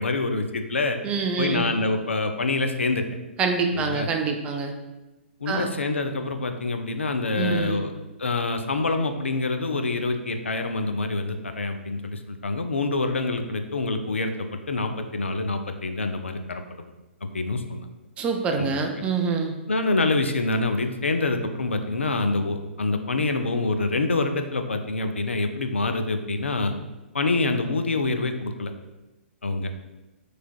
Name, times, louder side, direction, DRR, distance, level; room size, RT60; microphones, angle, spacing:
voice 1, 0.0-1.0 1.4-3.0 3.7-4.1 5.4-7.9 8.2-16.8 17.2-17.9 18.6-18.8 19.7-26.7 27.1-28.7 29.4-29.7, left 3 dB, 75° left, 6 dB, 0.4 m, -26 dB
voice 2, 1.0-1.7 3.4-4.7 5.5-5.7 7.4-7.8 18.2-19.5, right 5 dB, 15° right, 4 dB, 0.3 m, -26 dB
4.4 x 3.2 x 2.2 m, 1.1 s
figure-of-eight pair, 115°, 7 cm